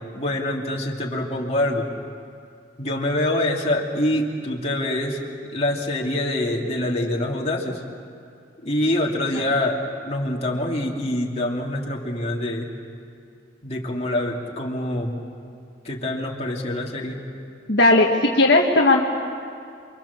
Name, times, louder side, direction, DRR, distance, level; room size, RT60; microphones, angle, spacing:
voice 1, 0.1-1.9 2.8-7.8 8.6-12.7 13.6-15.2 15.8-17.2, left 1 dB, 35° left, -2 dB, 2.9 m, -25 dB
voice 2, 17.7-19.0, left 2 dB, 60° left, -1 dB, 1.6 m, -16 dB
29.0 x 24.0 x 7.3 m, 2.5 s
head